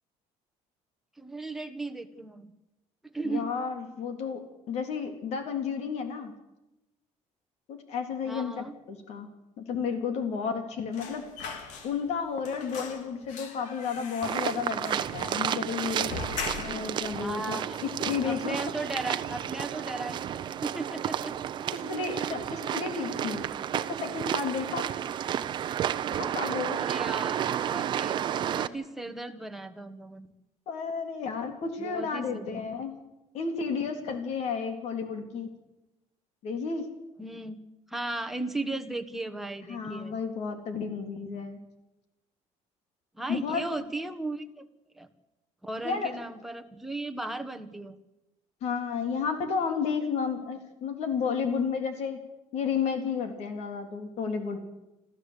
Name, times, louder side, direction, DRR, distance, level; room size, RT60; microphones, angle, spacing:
voice 1, 1.2-2.5 3.0-3.5 8.2-8.8 17.1-17.8 18.2-20.3 20.6-21.4 22.2-22.3 26.7-30.3 31.8-32.7 37.2-37.6 37.9-40.2 43.1-44.7 44.9-45.1 45.6-48.0, right 2 dB, ahead, 6 dB, 1.3 m, -36 dB
voice 2, 3.2-6.3 7.7-9.3 9.6-11.2 11.8-16.1 16.6-17.6 17.8-18.6 21.7-24.9 26.1-26.8 30.7-33.0 33.3-35.5 36.4-36.9 39.7-41.6 43.3-43.7 45.8-46.1 48.6-52.2 52.5-54.6, left 6 dB, 60° left, 6 dB, 3.7 m, -32 dB
sound 1, 10.9-12.2 12.4-17.0 17.3-17.4 17.7-18.6 18.9-19.1 19.4-20.1 20.4-20.6, left 5 dB, 75° left, 3.2 m, -41 dB
sound 2, 14.2-28.7, right 10 dB, 40° right, 0.7 m, -32 dB
26.5 x 14.5 x 8.4 m, 0.97 s
cardioid pair, 175°, 13 cm